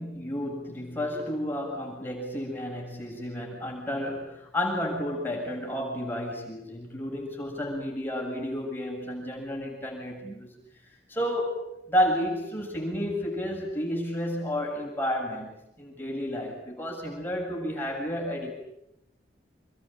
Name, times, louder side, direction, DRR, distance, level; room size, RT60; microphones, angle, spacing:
voice 1, 0.0-10.5 11.1-11.6 11.9-18.5, equal, 10° left, -1 dB, 7.6 m, -31 dB
27.5 x 22.5 x 9.1 m, 0.83 s
head